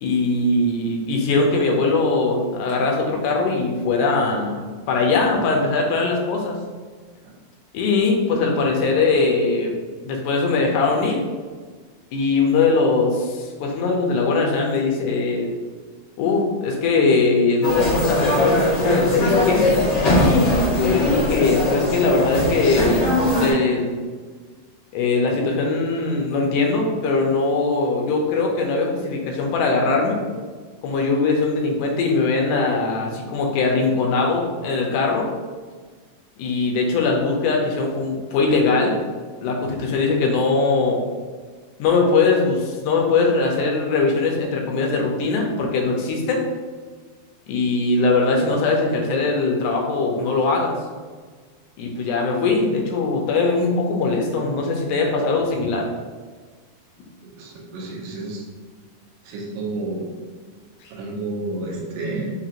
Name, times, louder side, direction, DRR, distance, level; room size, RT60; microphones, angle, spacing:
voice 1, 0.0-4.6 4.9-6.6 7.7-9.7 10.0-11.2 12.1-15.5 16.2-19.9 20.1-23.0 23.4-23.9 24.9-30.2 30.8-35.3 36.4-39.0 39.4-41.0 41.8-46.5 47.5-50.8 51.8-55.9, left 3 dB, 80° left, 0 dB, 1.9 m, -21 dB
sound 1, 17.6-23.5, left 1 dB, 55° left, 1.1 m, -20 dB
voice 2, 57.4-58.4 59.3-60.1 60.9-62.3, right 2 dB, 75° right, -2 dB, 2.2 m, -30 dB
5.5 x 2.9 x 2.5 m, 1.5 s
omnidirectional pair, 4.1 m